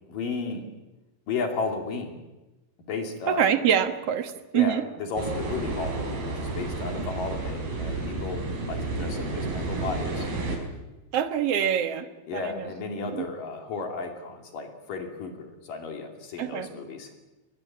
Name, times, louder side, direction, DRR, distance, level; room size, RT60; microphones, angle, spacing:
voice 1, 0.1-0.6 1.3-2.1 2.9-3.5 4.5-10.6 12.3-17.2, left 4 dB, 65° left, 4 dB, 4.3 m, -34 dB
voice 2, 3.3-4.8 11.1-12.1 12.3-12.7 13.0-13.2 16.4-16.7, right 9 dB, 55° right, 9 dB, 1.9 m, -25 dB
sound 1, 5.2-10.6, right 2 dB, 85° right, 6.7 m, -31 dB
22.5 x 21.0 x 8.8 m, 1.1 s
omnidirectional pair, 4.3 m